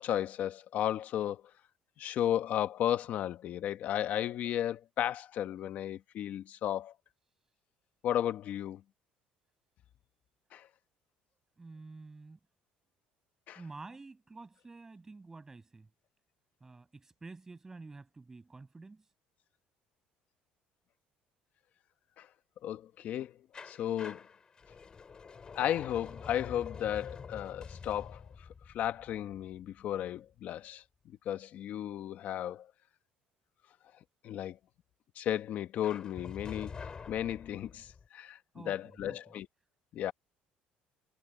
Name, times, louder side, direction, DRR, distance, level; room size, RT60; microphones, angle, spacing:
voice 1, 0.0-1.4 2.0-6.9 8.0-8.8 10.5-10.7 13.5-13.6 22.2-22.3 22.6-23.3 23.6-24.2 25.5-28.2 28.7-30.8 31.2-32.7 34.2-34.6 35.2-36.7 37.1-39.5 39.9-40.1, left 11 dB, 50° left, 1.1 m, -34 dB
voice 2, 11.6-12.4 13.5-15.9 16.6-19.1 38.5-39.3, right 3 dB, 15° right, 6.0 m, -49 dB
sound 1, 23.5-30.3 35.8-38.1, left 5 dB, 25° left, 4.9 m, -47 dB
cardioid pair, 155°, 3 cm